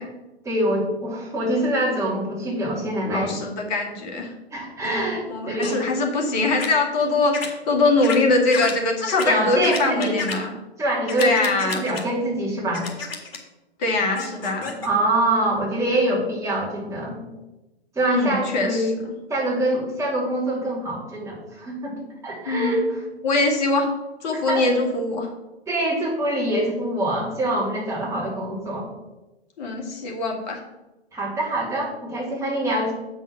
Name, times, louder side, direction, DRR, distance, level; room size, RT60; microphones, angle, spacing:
voice 1, 0.4-3.4 4.5-5.8 9.2-10.2 10.8-12.9 14.8-17.2 17.9-18.9 19.3-21.9 22.2-23.0 24.5-24.6 25.7-28.9 31.1-32.9, right 1 dB, 10° right, -5 dB, 3.0 m, -24 dB
voice 2, 3.1-4.3 4.8-10.5 11.2-11.8 13.8-14.7 18.1-18.9 22.5-22.9 23.2-23.9 24.2-25.3 29.6-30.6, left 3 dB, 40° left, 1 dB, 2.3 m, -22 dB
sound 1, 5.6-5.8 6.6-6.7 7.3-7.5 8.0-8.2 8.5-8.7 9.1-9.3 9.6-10.4 11.1-12.0 12.7-13.4 14.1-14.9, left 4 dB, 65° left, 2.0 m, -31 dB
8.2 x 5.6 x 6.0 m, 1.0 s
figure-of-eight pair, 115°, 32 cm